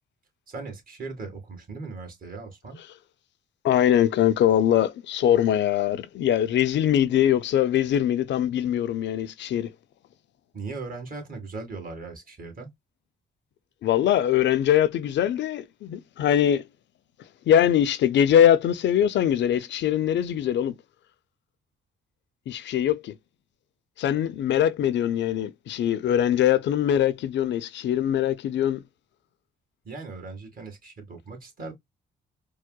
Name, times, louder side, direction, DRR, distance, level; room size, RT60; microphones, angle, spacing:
voice 1, 0.5-2.8 10.5-12.7 29.8-31.7, right 3 dB, 45° right, 2.0 m, -38 dB
voice 2, 3.6-9.7 13.8-16.7 17.5-20.8 22.5-23.1 24.0-28.8, left 10 dB, 65° left, 0.5 m, -22 dB
4.6 x 2.1 x 2.2 m
cardioid pair, 90°, 20 cm